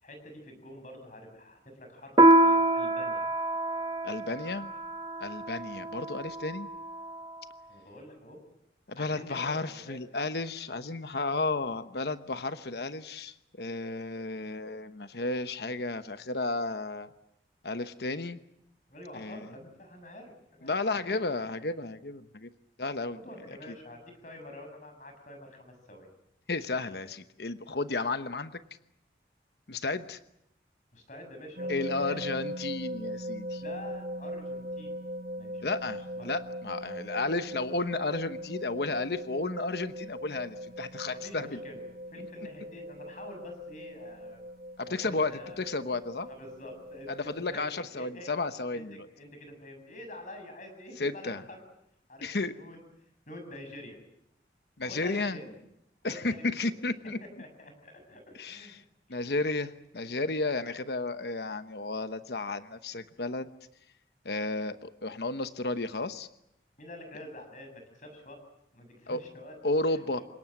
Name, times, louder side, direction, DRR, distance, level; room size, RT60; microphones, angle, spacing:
voice 1, 0.0-3.3 7.7-8.4 8.9-10.0 18.9-20.8 21.1-21.2 23.1-26.1 30.9-32.2 33.6-35.0 35.4-35.7 36.1-36.3 41.1-41.8 42.1-44.4 44.9-45.6 46.3-48.3 48.7-51.6 52.1-52.8 53.3-54.0 54.8-55.5 56.1-56.7 57.0-57.1 57.4-58.8 59.1-59.2 66.8-68.4 68.7-69.6 69.9-70.2, left 1 dB, 45° left, 5 dB, 7.2 m, -47 dB
Piano, 2.2-7.1, right 1 dB, 25° right, 1.0 m, -26 dB
voice 2, 4.0-4.7 5.2-6.7 8.9-17.1 17.6-18.4 19.1-19.5 20.6-22.5 22.8-23.2 26.5-28.6 29.7-30.2 31.7-33.6 35.6-41.6 42.2-42.3 44.8-46.3 47.1-49.1 51.0-51.4 52.2-52.5 54.8-55.4 56.0-57.2 58.4-58.8 59.1-63.5 64.2-66.3 69.1-69.2 69.6-70.2, left 3 dB, 70° left, 11 dB, 1.0 m, -33 dB
sound 1, 31.6-47.6, equal, 55° right, 1.0 m, -40 dB
28.0 x 18.5 x 9.0 m, 0.80 s
head